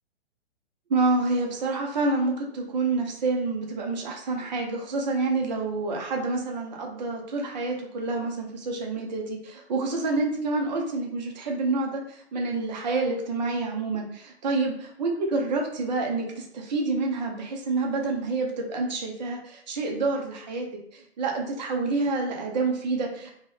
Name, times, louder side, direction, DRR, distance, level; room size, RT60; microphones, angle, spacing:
voice 1, 0.9-14.7 15.0-20.7 20.9-23.3, right 3 dB, 40° right, 1 dB, 0.8 m, -28 dB
3.7 x 2.3 x 3.4 m, 0.71 s
figure-of-eight pair, 115°, 34 cm